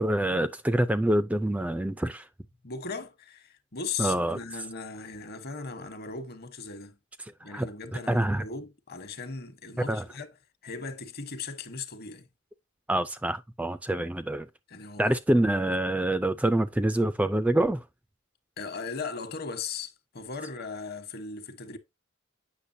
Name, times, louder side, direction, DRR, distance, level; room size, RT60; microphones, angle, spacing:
voice 1, 0.0-2.3 4.0-4.4 7.5-7.7 8.1-8.4 9.9-10.1 12.9-14.5 15.0-17.8, right 1 dB, 5° right, 0.3 m, -26 dB
voice 2, 2.6-7.0 7.4-10.3 10.6-12.3 14.7-15.4 18.6-21.8, left 4 dB, 50° left, 1.1 m, -38 dB
8.2 x 6.0 x 2.6 m
head